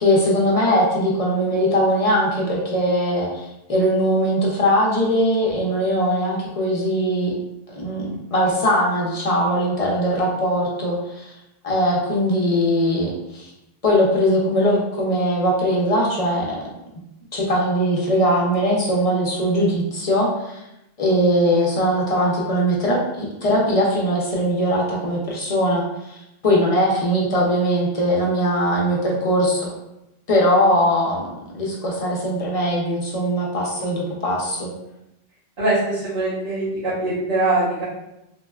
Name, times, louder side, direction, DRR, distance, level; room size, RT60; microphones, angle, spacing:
voice 1, 0.0-7.3 7.7-11.3 11.6-13.5 13.8-16.6 17.3-20.6 21.0-29.7 30.3-31.3 31.5-34.7, equal, 45° left, -3 dB, 0.5 m, -20 dB
voice 2, 35.6-37.8, right 2 dB, 70° right, -14 dB, 1.4 m, -22 dB
3.5 x 2.1 x 2.2 m, 0.89 s
omnidirectional pair, 1.1 m